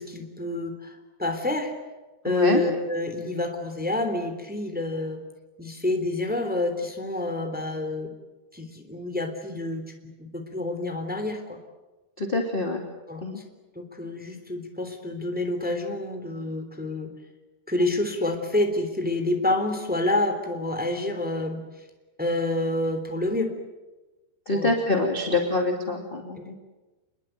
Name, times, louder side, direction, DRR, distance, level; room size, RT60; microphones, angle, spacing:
voice 1, 0.0-1.8 2.2-5.2 5.6-8.1 8.5-9.8 10.2-11.6 13.1-13.4 13.7-17.1 17.7-21.6 22.2-23.5 24.5-24.7 25.3-25.4 26.4-26.5, left 2 dB, ahead, 6 dB, 2.6 m, -28 dB
voice 2, 2.3-2.6 12.2-12.8 13.2-13.4 24.5-26.5, left 2 dB, 15° left, 2 dB, 1.9 m, -25 dB
29.0 x 21.5 x 9.2 m, 1.1 s
omnidirectional pair, 5.0 m